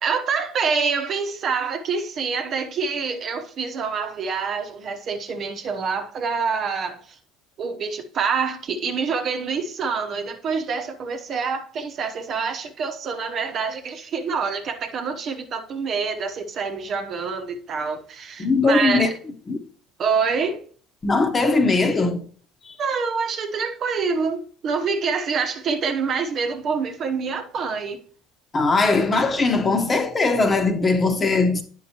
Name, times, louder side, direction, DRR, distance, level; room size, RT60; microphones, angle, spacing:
voice 1, 0.0-7.2 7.6-19.1 20.0-20.6 22.8-28.0, right 5 dB, 45° right, 1.1 m, -26 dB
voice 2, 18.4-19.1 19.5-19.6 21.0-22.2 22.6-22.8 28.5-31.6, left 3 dB, 30° left, 1.2 m, -20 dB
9.6 x 5.7 x 2.9 m
hypercardioid pair, 65°, 0 cm